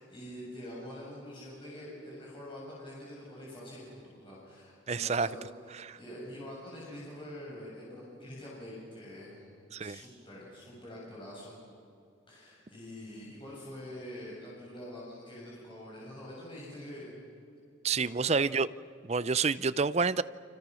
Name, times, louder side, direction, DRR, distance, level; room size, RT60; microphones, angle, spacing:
voice 1, 0.0-11.5 12.3-17.2 17.9-18.3, left 1 dB, 25° left, 7.6 m, -45 dB
voice 2, 4.9-5.3 5.8-6.0 9.7-10.0 17.8-18.7 19.0-20.2, right 5 dB, 35° right, 0.5 m, -28 dB
29.5 x 26.5 x 6.4 m
head